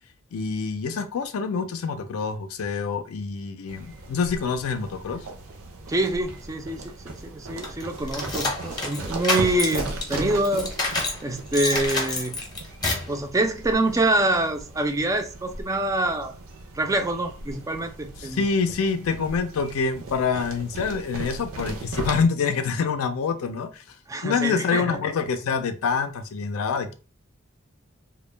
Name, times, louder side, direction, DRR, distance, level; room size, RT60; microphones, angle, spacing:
voice 1, 0.3-5.3 18.2-23.8 24.2-26.9, left 5 dB, 85° left, 0.4 m, -26 dB
sound 1, 3.7-22.3, right 2 dB, 75° right, 0.5 m, -38 dB
voice 2, 5.9-10.7 11.2-12.4 12.9-16.4 16.7-18.4 24.1-25.0, right 2 dB, 15° right, 0.3 m, -26 dB
sound 2, 7.6-11.2 11.5-13.1, left 2 dB, 20° left, 0.7 m, -28 dB
2.2 x 2.0 x 3.2 m
head